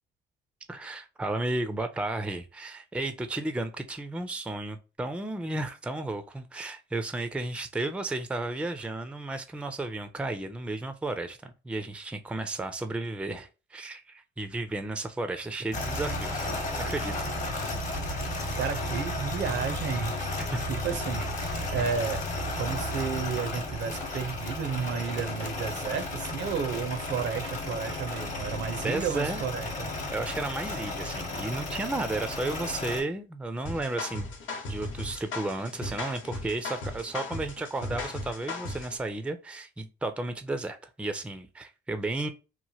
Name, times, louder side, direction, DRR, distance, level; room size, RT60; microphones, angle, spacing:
voice 1, 0.7-16.5 16.8-17.3 20.4-20.7 28.8-29.4 30.1-34.3 34.7-42.3, right 2 dB, 5° right, 0.4 m, -33 dB
sound 1, 15.7-33.0, left 2 dB, 40° left, 0.9 m, -33 dB
voice 2, 18.6-21.2 21.5-22.2 22.5-29.9, right 6 dB, 65° right, 0.5 m, -32 dB
sound 2, 33.6-39.0, left 2 dB, 75° left, 0.9 m, -37 dB
3.0 x 2.1 x 2.7 m
cardioid pair, 90°, 20 cm